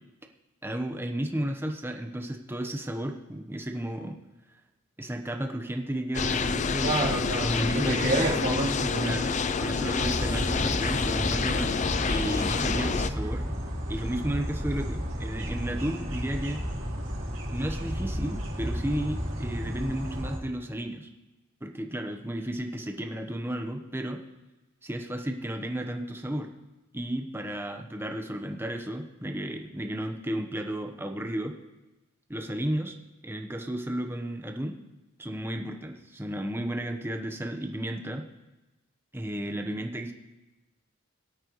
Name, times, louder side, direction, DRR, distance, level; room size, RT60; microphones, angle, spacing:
voice 1, 0.6-4.2 5.0-7.0 7.5-8.4 9.0-11.7 12.1-13.4 13.9-16.7 17.5-21.1 21.6-24.2 24.8-26.5 26.9-31.6 32.3-32.9 33.2-34.8 35.2-38.3 39.1-40.1, right 1 dB, 10° right, 4 dB, 1.0 m, -33 dB
sound 1, 6.1-13.1, left 5 dB, 35° left, 0.5 m, -28 dB
voice 2, 6.8-9.2, right 1 dB, 50° right, -7 dB, 3.4 m, -28 dB
sound 2, 9.9-20.4, equal, 80° right, 4.3 m, -33 dB
21.5 x 8.8 x 3.1 m, 1.1 s
head